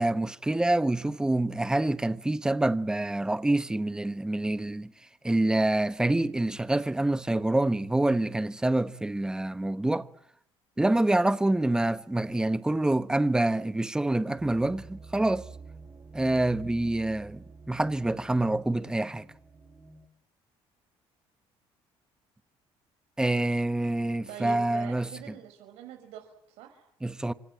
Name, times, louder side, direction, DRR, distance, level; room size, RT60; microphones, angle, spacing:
voice 1, 0.0-4.9 5.2-10.1 10.8-15.4 16.1-19.2 23.2-25.1 27.0-27.3, right 2 dB, 5° right, 1.1 m, -26 dB
sound 1, 14.4-20.1, right 4 dB, 25° right, 6.1 m, -48 dB
voice 2, 24.3-26.9, right 10 dB, 80° right, 5.6 m, -44 dB
29.0 x 26.0 x 7.8 m
cardioid pair, 130°, 10 cm